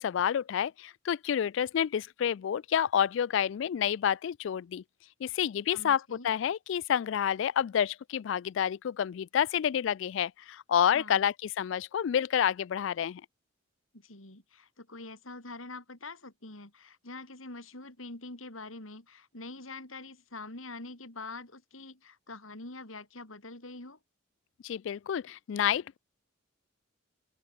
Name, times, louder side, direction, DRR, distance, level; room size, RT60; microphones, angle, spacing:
voice 1, 0.0-4.8 5.2-13.2 24.6-26.0, left 9 dB, 65° left, 0.3 m, -29 dB
voice 2, 5.7-6.3 10.9-11.2 13.9-24.0, left 2 dB, 85° left, 5.0 m, -45 dB
open air
head